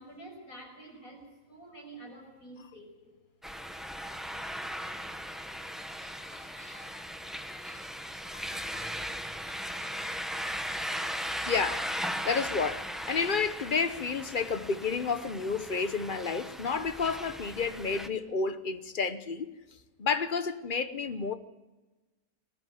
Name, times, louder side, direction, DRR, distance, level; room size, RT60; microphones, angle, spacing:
voice 1, 0.0-3.2, right 2 dB, 65° left, 7.1 m, -48 dB
sound 1, 3.4-18.1, equal, ahead, 0.9 m, -38 dB
voice 2, 6.2-7.1 7.5-8.1 8.3-9.2 9.5-10.6 11.5-12.0 12.2-19.5 20.0-21.3, left 5 dB, 40° left, 0.9 m, -32 dB
22.0 x 14.5 x 9.4 m
omnidirectional pair, 1.6 m